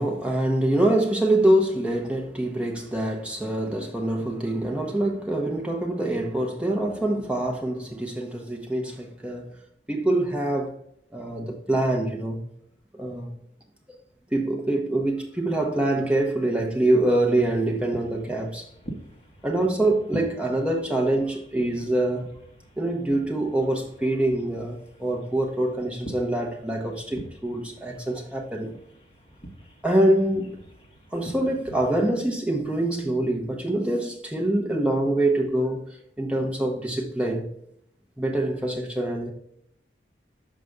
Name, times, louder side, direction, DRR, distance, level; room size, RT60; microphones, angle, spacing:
voice 1, 0.0-9.6 9.9-10.8 11.1-12.4 12.9-13.3 14.3-18.7 19.4-22.3 22.8-28.7 29.8-30.6 31.1-35.8 36.2-37.5 38.2-39.3, right 1 dB, 5° right, 0.8 m, -25 dB
sound 1, 17.2-32.1, right 1 dB, 30° left, 1.2 m, -44 dB
6.6 x 5.1 x 3.5 m
head